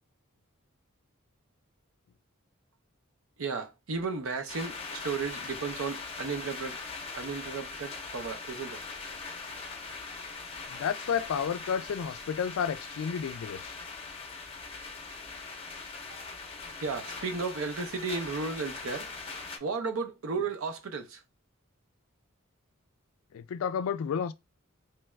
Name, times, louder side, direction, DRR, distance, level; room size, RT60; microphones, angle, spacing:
voice 1, 3.4-6.8 7.1-8.8 16.1-16.5 16.8-19.2 19.6-21.2, right 4 dB, 70° right, 0.6 m, -34 dB
sound 1, 4.5-19.6, left 4 dB, 25° left, 0.6 m, -41 dB
voice 2, 10.7-13.8 23.3-24.3, left 7 dB, 70° left, 0.3 m, -31 dB
3.1 x 2.3 x 3.1 m
head